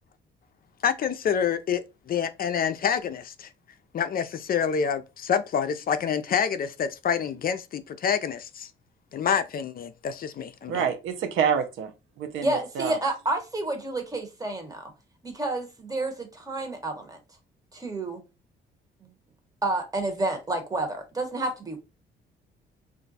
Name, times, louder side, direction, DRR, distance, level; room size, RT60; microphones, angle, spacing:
voice 1, 0.8-1.8 2.1-3.5 3.9-8.7 9.1-10.9, left 7 dB, 50° left, 0.4 m, -27 dB
voice 2, 10.7-11.9 12.2-13.0, right 7 dB, 90° right, 0.6 m, -27 dB
voice 3, 12.4-14.9 15.2-17.2 17.7-18.2 19.6-21.8, right 2 dB, 20° right, 1.0 m, -30 dB
2.5 x 2.2 x 4.0 m
cardioid pair, 90°, 20 cm